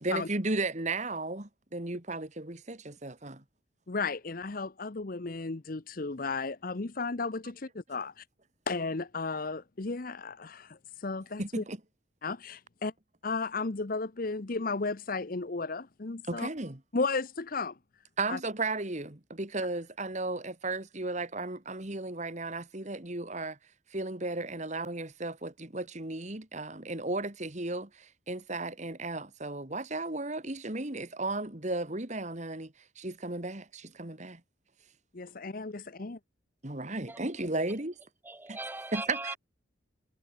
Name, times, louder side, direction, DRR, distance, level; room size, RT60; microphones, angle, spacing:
voice 1, 0.0-3.4 11.4-11.8 16.3-16.8 18.2-23.6 23.9-34.4 36.6-37.9 38.5-38.6 38.9-39.4, right 2 dB, 35° right, 2.0 m, -35 dB
voice 2, 3.9-8.2 8.7-11.6 12.2-12.9 13.2-16.5 16.9-17.8 18.3-18.4 35.1-36.2, left 3 dB, 45° left, 0.8 m, -34 dB
voice 3, 38.2-39.3, right 2 dB, 10° right, 0.8 m, -39 dB
head